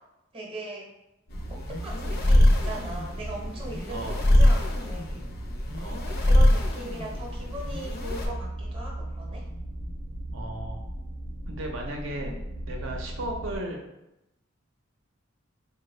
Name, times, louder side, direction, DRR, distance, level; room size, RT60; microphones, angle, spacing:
voice 1, 0.3-0.9 1.5-5.3 6.0-9.4 12.2-12.4, right 1 dB, 30° right, -2 dB, 0.7 m, -39 dB
sound 1, 1.3-13.6, right 1 dB, 85° left, 0.8 m, -37 dB
sound 2, 1.3-8.3, left 1 dB, 50° left, 0.5 m, -23 dB
voice 2, 3.9-4.2 5.7-6.0 10.3-10.8 11.5-12.3 12.6-13.8, right 1 dB, 70° right, 2 dB, 0.6 m, -35 dB
3.6 x 2.2 x 3.1 m, 0.90 s
head